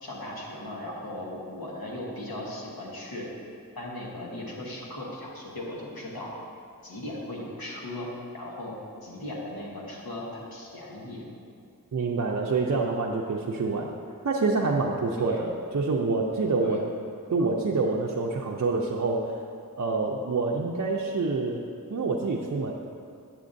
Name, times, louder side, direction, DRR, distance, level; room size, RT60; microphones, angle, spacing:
voice 1, 0.0-3.3 3.7-6.4 6.8-8.1 8.3-11.2 15.2-15.4 16.6-16.8, left 1 dB, 90° left, -4 dB, 1.3 m, -37 dB
voice 2, 11.9-13.9 14.2-16.9 17.3-19.3 19.8-21.6 21.9-22.7, right 3 dB, 50° right, -2 dB, 0.5 m, -26 dB
8.3 x 7.0 x 2.6 m, 2.4 s
wide cardioid pair, 50°, 35 cm